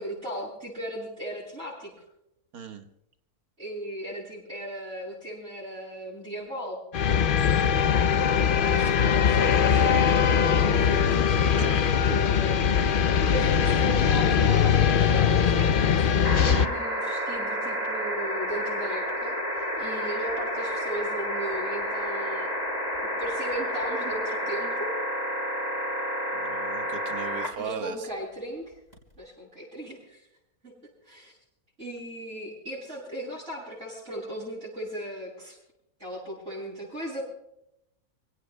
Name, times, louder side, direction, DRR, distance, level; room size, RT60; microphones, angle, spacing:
voice 1, 0.0-1.9 3.6-6.8 8.5-10.2 10.5-22.5 23.2-25.0 27.6-28.8 29.2-30.3 30.6-30.7 31.0-31.4 31.8-35.6 36.0-37.2, right 1 dB, 45° right, -13 dB, 7.9 m, -37 dB
voice 2, 2.5-2.8 8.8-8.9 11.6-11.8 26.4-28.0, right 5 dB, 75° right, 5 dB, 1.9 m, -37 dB
sound 1, 6.9-16.7, left 7 dB, 55° left, 0.6 m, -21 dB
sound 2, 16.2-27.5 28.9-29.0, equal, 25° left, 4.6 m, -30 dB
29.5 x 17.5 x 2.2 m, 0.84 s
omnidirectional pair, 1.6 m